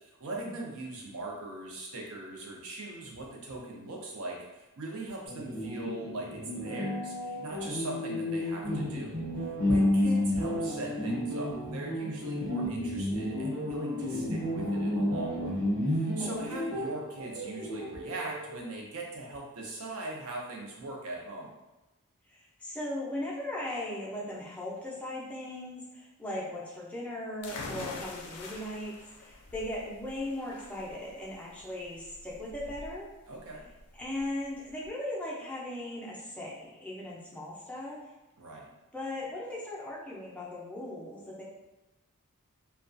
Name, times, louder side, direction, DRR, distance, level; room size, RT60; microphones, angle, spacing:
voice 1, 0.0-15.6 15.9-21.5 33.3-33.7 38.4-38.7, right 2 dB, 70° right, -1 dB, 0.5 m, -40 dB
sound 1, 5.3-18.5, left 1 dB, 85° right, 1.0 m, -31 dB
voice 2, 9.7-10.1 16.2-16.5 22.3-33.1 33.9-38.0 38.9-41.4, left 1 dB, 5° left, -5 dB, 0.4 m, -38 dB
sound 2, 27.4-34.9, left 3 dB, 85° left, 0.4 m, -45 dB
2.3 x 2.2 x 2.5 m, 1.0 s
head